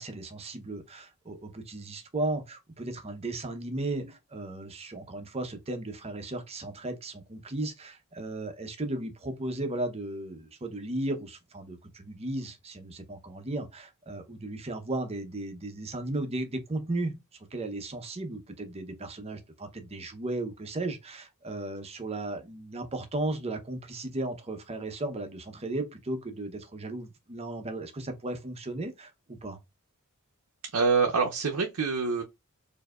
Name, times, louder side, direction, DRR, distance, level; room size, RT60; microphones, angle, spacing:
voice 1, 0.0-17.2 17.5-29.6, right 2 dB, 30° right, 0.7 m, -35 dB
voice 2, 30.7-32.2, right 4 dB, 90° right, 0.6 m, -25 dB
4.5 x 2.7 x 2.3 m
head